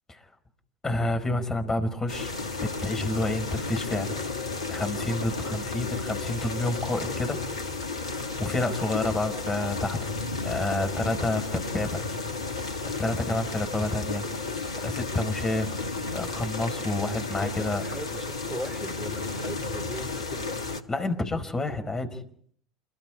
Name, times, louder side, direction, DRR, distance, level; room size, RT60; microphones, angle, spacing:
voice 1, 0.8-2.3 2.6-4.2 4.7-7.4 8.1-10.1 10.4-12.0 12.8-14.3 14.8-15.7 16.1-17.8 20.9-22.2, left 2 dB, 15° left, 7 dB, 4.8 m, -29 dB
sound 1, 2.1-20.8, left 3 dB, 80° left, 1.8 m, -33 dB
voice 2, 17.4-20.5, right 1 dB, 10° right, 6 dB, 3.0 m, -39 dB
29.0 x 22.0 x 5.0 m, 0.62 s
figure-of-eight pair, 75°, 3 cm